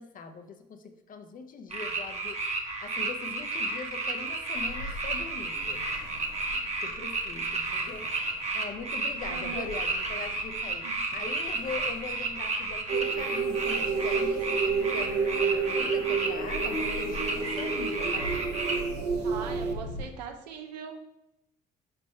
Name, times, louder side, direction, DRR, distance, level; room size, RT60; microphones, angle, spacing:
voice 1, 0.0-5.9 6.8-8.1 8.5-10.9 11.1-18.3, left 5 dB, 40° left, 7 dB, 0.7 m, -41 dB
sound 1, 1.7-18.8, right 3 dB, 30° right, 1.1 m, -32 dB
Ocean, 4.6-20.1, left 1 dB, 80° left, 0.9 m, -44 dB
voice 2, 9.3-9.7 10.8-10.9 19.2-21.0, right 6 dB, 80° right, 5 dB, 0.7 m, -40 dB
sound 2, 12.9-19.7, right 5 dB, 55° right, 1.0 m, -30 dB
5.2 x 3.3 x 5.5 m, 0.88 s
hypercardioid pair, 55°, 21 cm